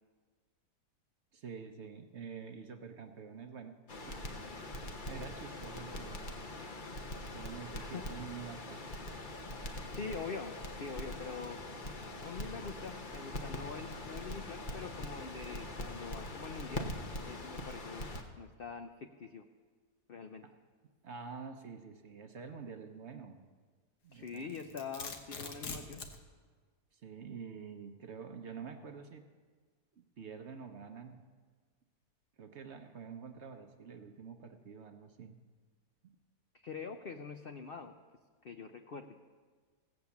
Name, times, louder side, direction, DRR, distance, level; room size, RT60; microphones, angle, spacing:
voice 1, 1.3-3.8 4.1-4.3 4.5-4.8 5.1-6.4 7.3-9.1 20.4-20.5 21.0-23.5 24.0-24.5 26.9-29.3 30.0-31.2 32.4-35.4 36.0-36.1, right 6 dB, 55° right, 6 dB, 0.9 m, -47 dB
Crackle, 3.9-18.2, left 1 dB, 35° left, 1.0 m, -43 dB
voice 2, 9.9-11.6 12.2-16.9 17.2-18.1 18.4-19.4 20.1-20.4 24.1-26.0 36.6-37.9 38.4-39.1, left 5 dB, 65° left, 6 dB, 0.5 m, -44 dB
Domestic sounds home sounds, 24.3-26.2, left 5 dB, 80° left, 1.7 m, -43 dB
16.5 x 8.0 x 7.1 m, 1.5 s
omnidirectional pair, 1.7 m